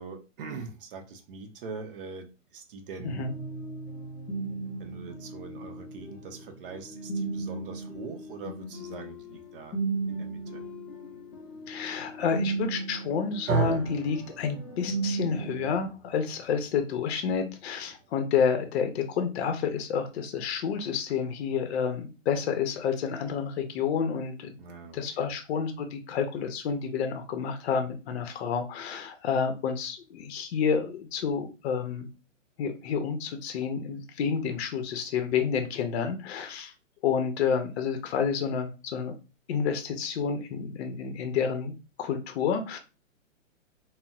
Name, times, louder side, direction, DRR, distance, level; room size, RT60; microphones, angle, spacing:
voice 1, 0.0-3.2 4.8-9.8 10.1-10.6 24.6-25.3, right 4 dB, 45° right, 4 dB, 0.7 m, -42 dB
sound 1, 3.0-15.9, right 3 dB, 20° left, 0.9 m, -36 dB
voice 2, 11.7-24.5 24.9-32.1 32.6-36.7 37.0-39.1 39.5-41.7 42.0-42.8, left 6 dB, 55° left, 7 dB, 0.6 m, -29 dB
sound 2, 13.5-21.7, right 4 dB, 85° right, 0.7 m, -37 dB
3.9 x 2.0 x 2.3 m, 0.31 s
hypercardioid pair, 140°, 40 cm